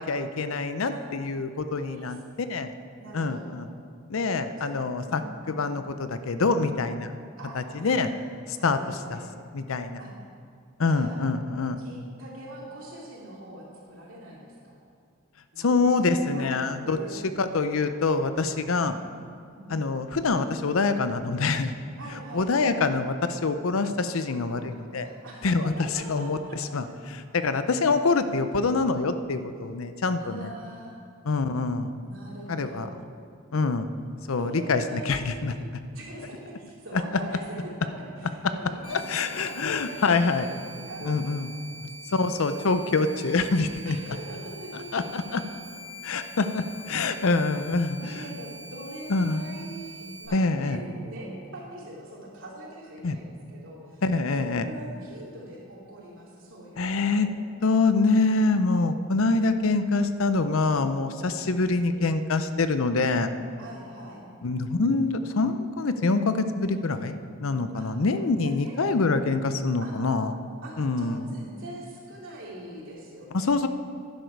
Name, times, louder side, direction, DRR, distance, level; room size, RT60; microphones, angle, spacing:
voice 1, 0.0-2.7 3.1-3.7 4.1-5.2 5.5-7.1 7.5-8.1 8.5-9.2 9.5-10.0 10.8-11.8 15.6-17.0 17.4-19.0 19.7-21.7 22.3-25.1 25.4-25.7 26.1-30.5 31.2-31.9 32.5-32.9 33.5-33.9 34.3-35.5 38.9-40.5 41.0-41.5 42.1-44.0 44.9-45.6 46.0-48.2 49.1-49.4 50.3-50.8 53.0-53.2 54.0-54.6 56.8-57.3 57.6-63.3 64.4-70.4 70.8-71.2 73.3-73.7, left 3 dB, 75° left, 10 dB, 0.6 m, -25 dB
voice 2, 1.7-2.1 3.0-3.5 4.6-4.7 5.0-5.8 7.4-8.2 8.5-9.2 10.0-10.1 10.9-11.2 11.8-14.8 15.5-16.5 16.8-17.1 18.7-19.0 19.5-19.8 22.0-22.8 25.0-26.9 30.1-31.0 32.0-33.0 34.4-35.7 35.9-41.5 41.7-41.8 42.5-42.7 43.8-44.9 45.5-45.7 46.9-47.0 47.9-54.0 54.3-57.3 60.6-61.5 63.5-64.2 67.7-67.9 68.4-68.7 69.0-69.1 69.8-69.9 70.6-73.6, right 1 dB, 65° right, -4 dB, 2.8 m, -43 dB
sound 1, 38.8-50.3, equal, 55° left, 3.2 m, -44 dB
11.5 x 10.5 x 4.6 m, 2.2 s
head